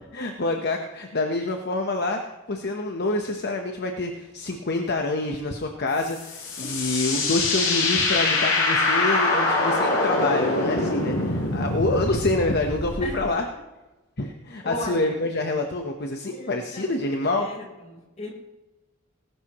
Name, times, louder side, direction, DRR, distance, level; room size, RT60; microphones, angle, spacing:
voice 1, 0.1-13.4 14.2-17.5, left 2 dB, 55° left, 3 dB, 1.1 m, -27 dB
sound 1, 6.0-13.2, left 2 dB, 75° left, 4.8 m, -24 dB
voice 2, 14.6-15.1 16.3-16.9 17.2-18.3, left 1 dB, 35° left, -1 dB, 4.4 m, -36 dB
19.5 x 12.0 x 3.1 m, 1.1 s
head